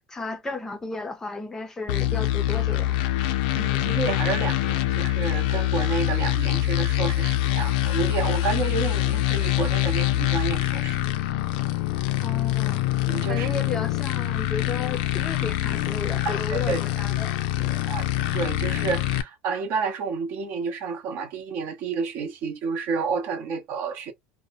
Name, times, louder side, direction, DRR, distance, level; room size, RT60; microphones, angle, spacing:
voice 1, 0.1-3.0 12.2-12.8 13.3-17.8, left 3 dB, 10° left, 0.4 m, -34 dB
sound 1, 1.9-19.2, left 14 dB, 90° left, 0.4 m, -25 dB
voice 2, 3.6-11.0 13.1-13.5 16.2-16.8 17.9-18.1 18.3-24.1, right 5 dB, 55° right, 0.6 m, -30 dB
2.6 x 2.0 x 2.6 m
cardioid pair, 165°, 4 cm